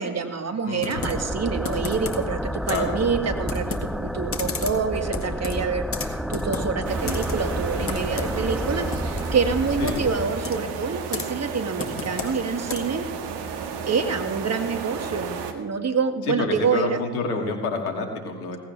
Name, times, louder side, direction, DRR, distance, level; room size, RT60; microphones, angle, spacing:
voice 1, 0.0-13.0 13.9-17.0, right 5 dB, 35° right, 7 dB, 2.1 m, -27 dB
voice 2, 0.6-1.1 2.7-2.9 9.8-10.0 16.3-18.6, left 3 dB, 85° left, 3 dB, 2.5 m, -28 dB
Computer keyboard, 0.8-13.1, left 4 dB, 30° left, 2.1 m, -36 dB
sound 1, 1.0-11.5, equal, ahead, 0.8 m, -31 dB
sound 2, 6.8-15.5, right 5 dB, 65° right, 1.9 m, -32 dB
17.5 x 16.5 x 3.4 m, 1.3 s
hypercardioid pair, 55°, 43 cm